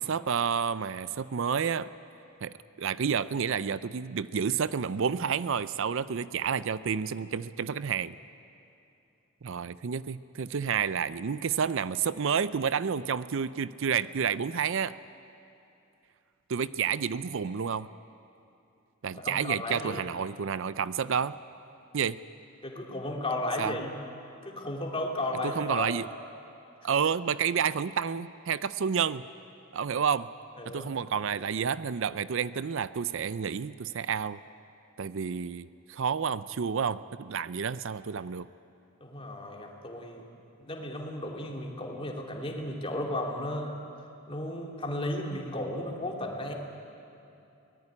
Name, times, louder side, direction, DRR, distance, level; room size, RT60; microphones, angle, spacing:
voice 1, 0.0-1.9 2.4-8.2 9.4-14.9 16.5-17.9 19.0-21.4 21.9-22.2 23.6-23.7 25.6-26.1 26.8-29.3 29.7-30.3 30.7-34.4 35.0-38.5, right 7 dB, 60° right, 16 dB, 0.5 m, -30 dB
voice 2, 19.1-20.0 22.6-23.9 24.4-25.9 30.6-31.0 39.0-40.3 40.6-43.7 44.3-46.5, left 1 dB, 25° left, 0 dB, 2.8 m, -34 dB
23.5 x 19.0 x 9.9 m, 2.8 s
head